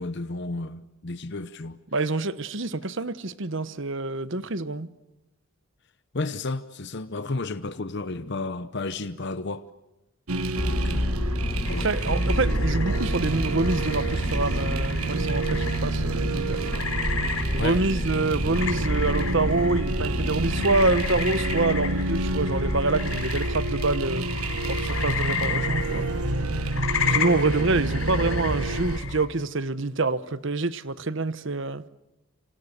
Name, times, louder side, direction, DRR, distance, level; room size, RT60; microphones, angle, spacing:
voice 1, 0.0-1.8 6.1-9.7 10.6-11.2 11.5-11.9 17.6-17.8, left 3 dB, 50° left, 0.8 m, -32 dB
voice 2, 1.9-4.9 11.7-16.9 17.5-24.3 24.7-26.1 27.1-31.8, right 3 dB, 55° right, 1.1 m, -26 dB
sound 1, 10.3-29.0, right 2 dB, 80° right, 1.4 m, -28 dB
Motor vehicle (road), 10.5-22.9, equal, 15° left, 1.2 m, -31 dB
sound 2, 11.6-29.3, left 5 dB, 65° left, 4.0 m, -33 dB
28.0 x 26.5 x 6.8 m
head